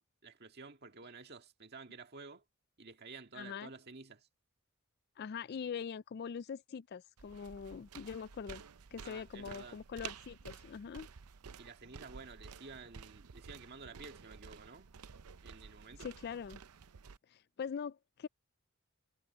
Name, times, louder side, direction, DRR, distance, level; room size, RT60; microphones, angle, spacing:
voice 1, 0.0-2.4 2.8-4.3 9.0-9.8 11.6-14.9 15.4-16.1, right 4 dB, 45° right, 1.9 m, -52 dB
voice 2, 3.3-3.7 5.2-8.6 8.9-11.1 16.0-16.6 17.3-18.3, left 6 dB, 45° left, 0.3 m, -43 dB
sound 1, 7.2-17.2, right 6 dB, 80° right, 0.6 m, -52 dB
head